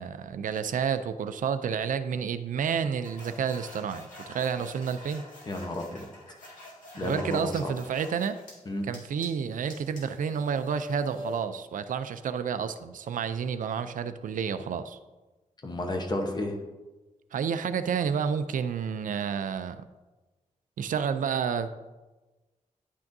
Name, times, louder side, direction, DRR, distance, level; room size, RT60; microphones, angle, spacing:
voice 1, 0.0-5.2 7.0-8.4 8.9-15.0 17.3-19.9 20.8-21.7, right 7 dB, 85° right, 11 dB, 0.4 m, -30 dB
sound 1, 3.0-8.6 8.9-11.4, left 2 dB, 80° left, 2.0 m, -45 dB
voice 2, 5.5-6.1 6.9-7.7 8.7-8.9 15.6-16.6, left 1 dB, 30° left, 3 dB, 0.9 m, -32 dB
10.0 x 5.9 x 2.6 m, 1.2 s
wide cardioid pair, 180°, 13 cm